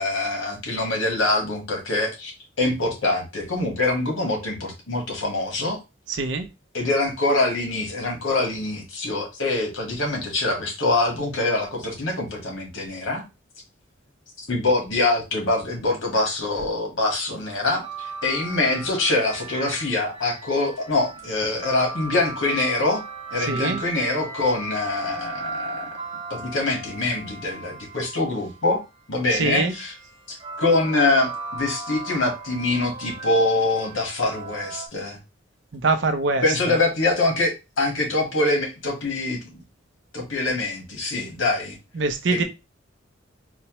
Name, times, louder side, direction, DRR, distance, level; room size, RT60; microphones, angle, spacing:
voice 1, 0.0-5.8 6.7-13.2 14.4-23.0 23.3-26.0 26.3-28.8 29.1-29.9 30.3-35.2 36.4-39.6 40.1-41.8 42.3-42.4, left 2 dB, 90° left, 1 dB, 1.3 m, -24 dB
sound 1, 17.8-28.7 29.6-34.9, right 3 dB, 25° right, 0.6 m, -37 dB
voice 2, 23.4-23.8 29.3-29.7 35.7-36.8 42.0-42.4, right 3 dB, 65° right, 8 dB, 0.5 m, -24 dB
4.3 x 2.1 x 2.9 m, 0.25 s
head